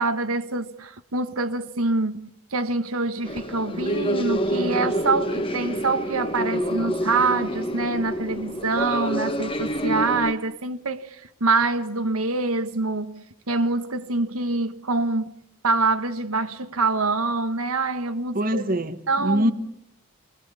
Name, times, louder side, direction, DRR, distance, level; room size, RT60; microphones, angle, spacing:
voice 1, 0.0-15.3 15.6-18.6 19.1-19.5, right 3 dB, 85° right, 1.6 m, -25 dB
sound 1, 3.2-10.3, equal, 25° left, 1.4 m, -27 dB
voice 2, 18.3-19.5, equal, 40° right, 1.4 m, -23 dB
28.5 x 23.0 x 8.4 m
head